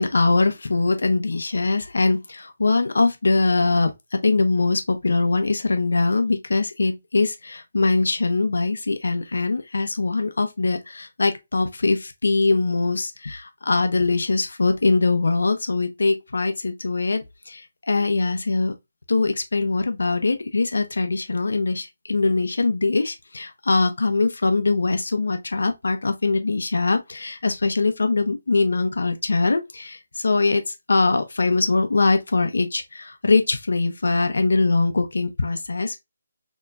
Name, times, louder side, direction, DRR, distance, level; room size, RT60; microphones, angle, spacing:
voice 1, 0.0-18.7 19.1-36.0, left 3 dB, 80° left, 0.7 m, -22 dB
4.5 x 3.0 x 2.5 m
hypercardioid pair, 170°, 0 cm